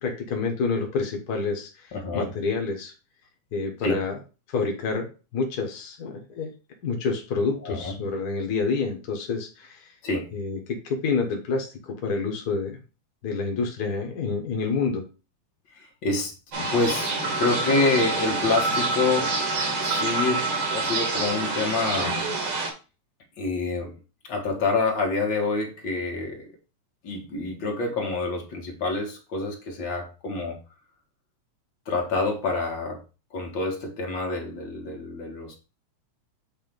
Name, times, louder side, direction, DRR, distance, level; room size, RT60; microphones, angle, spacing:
voice 1, 0.0-2.9 3.5-4.2 4.5-6.5 6.8-9.9 10.3-12.8 13.2-15.1, left 4 dB, 70° left, 2 dB, 0.9 m, -28 dB
voice 2, 1.9-2.3 3.8-4.0 7.6-7.9 10.0-10.3 16.0-16.3 16.6-19.4 19.8-22.2 23.4-23.9 24.2-26.5 27.0-30.6 31.9-33.0 33.3-35.6, left 3 dB, 50° left, 1 dB, 1.8 m, -27 dB
sound 1, 16.5-22.7, right 3 dB, 50° right, 2.2 m, -26 dB
7.6 x 2.7 x 5.2 m, 0.31 s
omnidirectional pair, 3.5 m